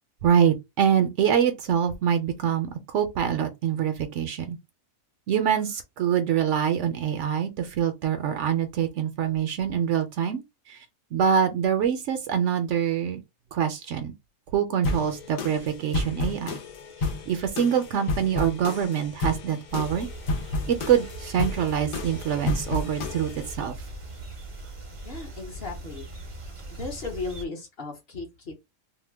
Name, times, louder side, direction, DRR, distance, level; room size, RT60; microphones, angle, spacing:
voice 1, 0.2-4.6 5.3-10.4 10.7-10.8 11.1-13.2 13.5-14.1 14.5-16.5 17.0-20.1 20.7-23.7, right 8 dB, 70° right, 0.8 m, -25 dB
sound 1, 14.8-23.5, left 2 dB, 80° left, 1.2 m, -31 dB
sound 2, 19.7-27.4, right 2 dB, 35° right, 0.5 m, -40 dB
voice 2, 25.0-26.1 26.7-28.5, left 3 dB, 50° left, 1.0 m, -36 dB
2.8 x 2.1 x 3.2 m
omnidirectional pair, 1.4 m